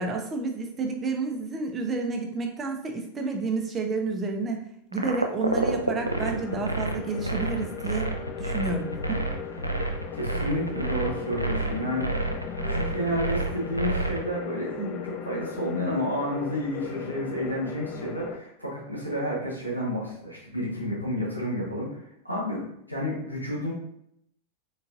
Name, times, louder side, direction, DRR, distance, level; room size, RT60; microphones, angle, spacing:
voice 1, 0.0-4.6 4.9-8.1 8.4-9.2 14.8-14.9, right 3 dB, 20° right, 3 dB, 0.7 m, -30 dB
sound 1, 4.9-14.2, right 2 dB, 90° right, 0.4 m, -29 dB
sound 2, 6.0-18.4, left 8 dB, 35° left, 0.3 m, -38 dB
voice 2, 10.1-12.3 12.6-23.7, equal, 90° left, -4 dB, 1.3 m, -31 dB
4.1 x 3.8 x 2.4 m, 0.77 s
figure-of-eight pair, 90°, 0 cm